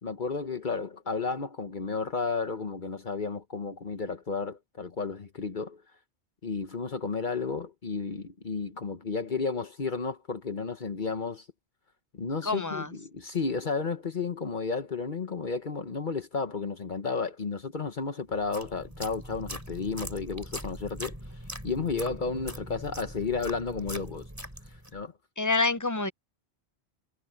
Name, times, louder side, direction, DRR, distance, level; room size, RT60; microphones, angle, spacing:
voice 1, 0.0-5.8 6.4-11.4 12.1-21.1 21.6-24.3 24.9-25.1, left 4 dB, 50° left, 1.2 m, -32 dB
voice 2, 12.4-12.9 25.4-26.1, left 3 dB, 20° left, 0.8 m, -27 dB
sound 1, 18.3-25.0, equal, 15° right, 3.9 m, -41 dB
omnidirectional pair, 1.1 m